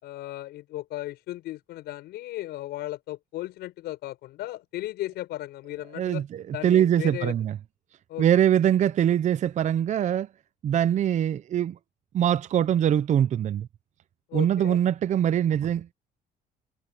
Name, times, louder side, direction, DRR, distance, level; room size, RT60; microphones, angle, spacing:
voice 1, 0.0-6.2 6.5-7.3 8.1-8.2 14.3-14.8, left 15 dB, 80° left, 5.5 m, -36 dB
voice 2, 5.9-7.6 8.2-10.3 10.6-11.8 12.1-13.7 14.3-15.9, right 10 dB, 45° right, 0.6 m, -23 dB
cardioid pair, 110°, 17 cm